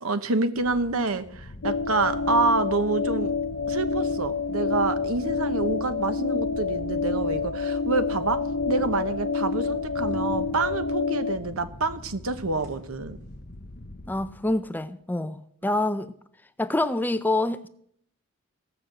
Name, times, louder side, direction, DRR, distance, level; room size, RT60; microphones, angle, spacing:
voice 1, 0.0-3.3 3.7-8.4 8.7-13.2, right 3 dB, 75° right, 1.0 m, -27 dB
Dark Rumbling, 0.6-14.8, left 1 dB, 45° left, 0.8 m, -44 dB
sound 1, 0.9-13.7, left 1 dB, 90° right, 4.3 m, -48 dB
sound 2, 1.6-11.4, left 4 dB, 90° left, 1.0 m, -28 dB
voice 2, 14.1-16.1 16.6-17.7, left 2 dB, 10° left, 0.4 m, -26 dB
16.0 x 6.4 x 7.5 m
head